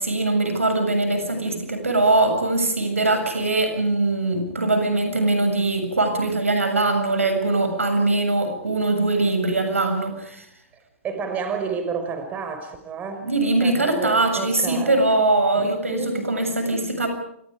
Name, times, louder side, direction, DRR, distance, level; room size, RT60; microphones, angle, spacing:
voice 1, 0.0-10.4 13.2-17.1, right 2 dB, 85° right, 6 dB, 7.3 m, -22 dB
voice 2, 11.0-13.3 13.6-15.0 15.5-16.3, right 5 dB, 20° right, 6 dB, 5.5 m, -30 dB
29.0 x 27.0 x 5.1 m, 0.74 s
figure-of-eight pair, 115°, 7 cm